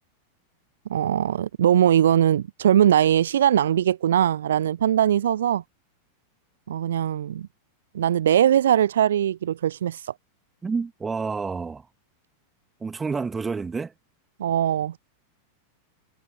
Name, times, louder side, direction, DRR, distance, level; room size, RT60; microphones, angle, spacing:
voice 1, 0.9-5.6 6.7-7.5 7.9-10.1 14.4-15.0, right 10 dB, 65° right, 0.3 m, -21 dB
voice 2, 10.6-11.9 12.8-13.9, right 4 dB, 15° right, 2.0 m, -29 dB
figure-of-eight pair, 90°, 0 cm